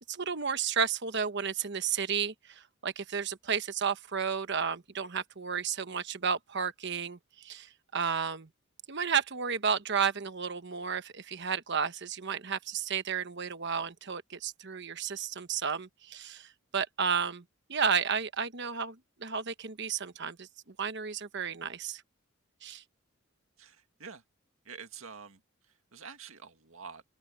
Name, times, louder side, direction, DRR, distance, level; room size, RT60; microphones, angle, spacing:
voice 1, 0.1-8.5 8.9-17.4 17.7-20.5 20.8-22.0 22.6-22.8, right 6 dB, 55° right, 1.1 m, -32 dB
voice 2, 23.6-24.2 24.6-27.0, right 5 dB, 75° right, 2.1 m, -48 dB
open air
head